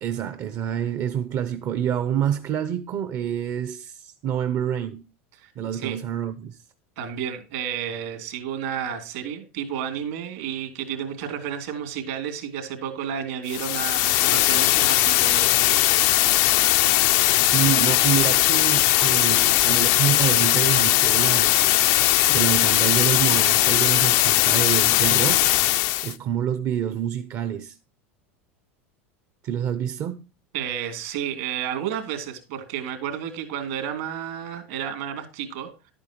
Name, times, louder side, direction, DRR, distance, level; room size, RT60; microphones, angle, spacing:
voice 1, 0.0-5.0 5.6-6.6 17.4-21.7 22.3-25.5 26.0-27.8 29.4-30.3, right 10 dB, 45° right, 0.7 m, -27 dB
voice 2, 5.4-6.0 7.0-15.8 16.2-16.3 30.5-35.9, right 9 dB, 75° right, 2.9 m, -31 dB
sound 1, 13.5-26.1, left 16 dB, 60° left, 0.4 m, -19 dB
11.5 x 8.8 x 3.0 m
hypercardioid pair, 95°, 7 cm